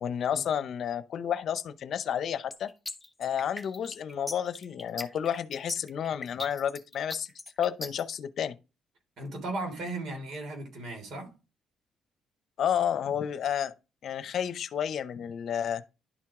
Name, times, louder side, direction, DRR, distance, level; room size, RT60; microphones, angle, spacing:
voice 1, 0.0-2.7 3.2-7.3 7.6-8.6 12.6-13.7 14.0-15.8, left 9 dB, 65° left, 0.7 m, -31 dB
sound 1, 2.5-8.1, left 2 dB, 10° left, 1.3 m, -39 dB
voice 2, 9.2-11.3, right 2 dB, 70° right, 3.1 m, -36 dB
11.5 x 4.5 x 3.6 m
cardioid pair, 90°, 0 cm